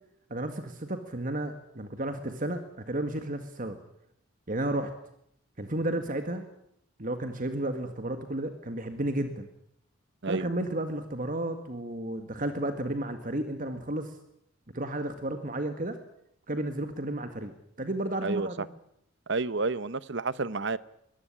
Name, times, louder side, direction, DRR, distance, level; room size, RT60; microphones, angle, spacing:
voice 1, 0.3-3.8 4.5-4.9 5.6-6.4 7.0-9.5 10.3-14.1 14.7-16.0 16.5-17.5 17.8-18.7, right 1 dB, 40° right, 1.9 m, -32 dB
voice 2, 18.2-18.7 19.3-20.8, right 3 dB, 60° right, 0.9 m, -30 dB
23.0 x 18.5 x 10.0 m
head